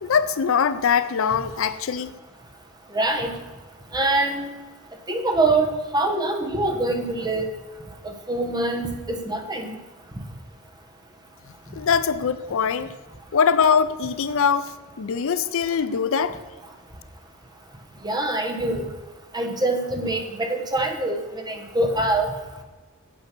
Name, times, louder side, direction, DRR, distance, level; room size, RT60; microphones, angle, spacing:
voice 1, 0.0-2.1 11.7-12.9 13.3-16.4, left 6 dB, 65° left, 14 dB, 0.5 m, -22 dB
voice 2, 2.9-3.3 3.9-4.5 5.1-7.5 8.0-9.8 18.0-18.9 19.3-21.2 21.4-22.3, right 2 dB, 20° right, 4 dB, 1.1 m, -24 dB
8.8 x 7.7 x 5.9 m, 1.3 s
head